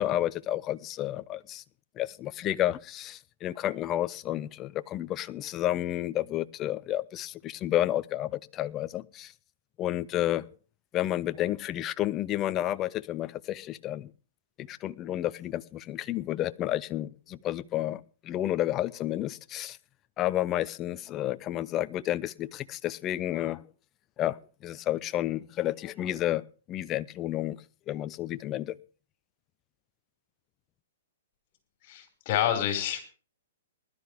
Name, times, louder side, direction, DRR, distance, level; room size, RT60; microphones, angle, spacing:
voice 1, 0.0-1.6 2.0-9.3 9.8-10.5 10.9-14.1 14.6-19.8 20.2-23.6 24.2-24.4 24.6-26.4 26.7-27.6 27.9-28.8, left 13 dB, 25° left, 0.6 m, -31 dB
voice 2, 31.8-33.0, left 10 dB, 45° left, 5.4 m, -28 dB
20.0 x 12.5 x 3.5 m
hypercardioid pair, 140°, 0 cm